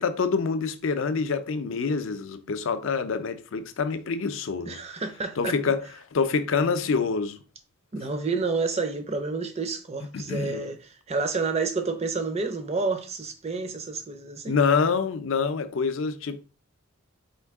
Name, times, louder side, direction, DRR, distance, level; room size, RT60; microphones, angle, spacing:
voice 1, 0.0-4.8 5.4-5.8 6.1-7.4 10.1-10.7 14.5-16.4, left 5 dB, 55° left, 0.4 m, -26 dB
voice 2, 4.7-5.6 7.9-10.8 11.1-14.6, right 4 dB, 30° right, 0.5 m, -29 dB
4.5 x 2.7 x 3.4 m
head